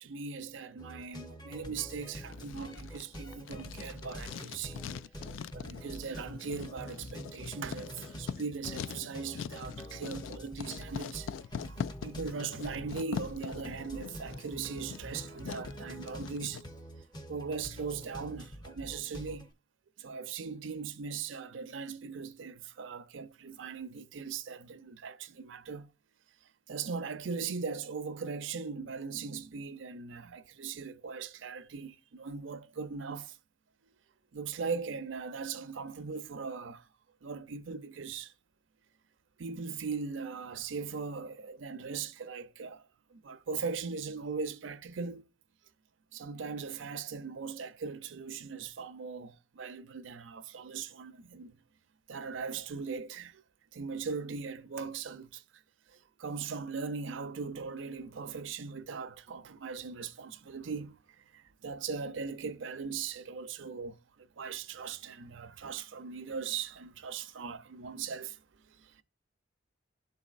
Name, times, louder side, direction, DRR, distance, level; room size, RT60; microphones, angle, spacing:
voice 1, 0.0-4.8 5.5-11.3 11.7-16.6 17.3-19.5 20.0-25.9 26.7-33.4 34.3-36.9 37.2-38.3 39.4-45.2 46.1-51.6 52.1-53.4 53.7-55.6 55.9-69.0, right 5 dB, 75° right, 0.5 m, -39 dB
sound 1, 0.8-19.5, equal, 20° left, 0.7 m, -46 dB
Writing, 2.3-16.6, left 7 dB, 85° left, 0.3 m, -43 dB
12.0 x 4.1 x 2.4 m
head